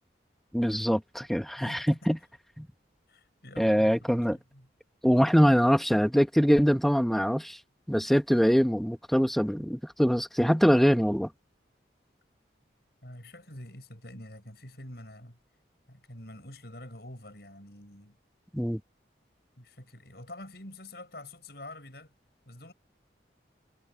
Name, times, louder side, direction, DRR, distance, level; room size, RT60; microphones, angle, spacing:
voice 1, 0.5-2.2 2.6-2.7 3.6-4.4 5.0-7.6 7.9-11.3 18.5-18.8, equal, ahead, 1.6 m, -23 dB
voice 2, 1.6-2.1 3.1-4.7 13.0-15.4 15.9-18.2 19.6-22.1 22.5-22.7, left 1 dB, 60° left, 7.8 m, -46 dB
head